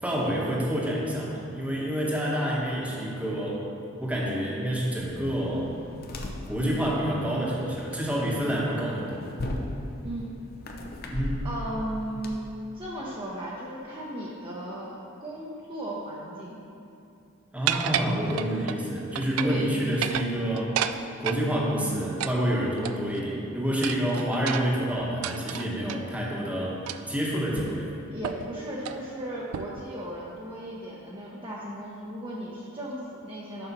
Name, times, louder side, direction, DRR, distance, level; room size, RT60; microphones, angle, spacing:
voice 1, 0.0-3.6 4.0-5.7 6.5-9.3 11.1-11.5 17.5-20.8 21.2-26.8 27.1-27.9, equal, 5° right, -4 dB, 1.1 m, -28 dB
sound 1, 5.0-12.3, left 1 dB, 45° left, 0.7 m, -38 dB
voice 2, 11.4-12.4 12.7-16.6 18.0-18.5 19.4-19.8 28.1-33.7, right 1 dB, 25° right, -6 dB, 0.8 m, -36 dB
sound 2, 17.7-18.8 19.2-19.6 19.9-21.4 22.2-23.2 23.8-26.0 26.9-27.2 27.6-27.7 28.2-28.5 28.8-29.0 29.5-29.9, right 9 dB, 85° right, 0.3 m, -31 dB
6.8 x 5.4 x 6.0 m, 2.6 s
head